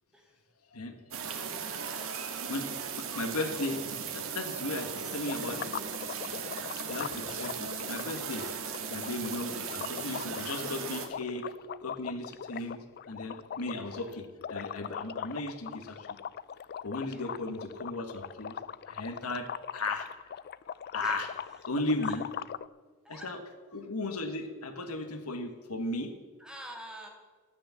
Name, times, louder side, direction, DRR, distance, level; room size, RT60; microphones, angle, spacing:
sound 1, 1.1-11.1, right 6 dB, 65° right, 1.7 m, -37 dB
voice 1, 1.6-2.7 3.0-5.8 6.9-8.4 8.9-11.5 11.8-16.2 16.8-18.6 18.9-20.1 20.9-21.3 21.6-22.2 23.1-23.4 23.7-26.1, left 2 dB, 80° left, 7 dB, 1.6 m, -36 dB
sound 2, 5.2-22.7, left 8 dB, 45° left, 0.4 m, -41 dB
voice 2, 7.0-7.3 13.6-14.2 17.0-17.4 21.0-21.3 22.0-22.1 23.0-23.3 26.4-27.1, equal, 5° right, 0 dB, 2.5 m, -48 dB
13.0 x 9.9 x 7.1 m, 1.4 s
head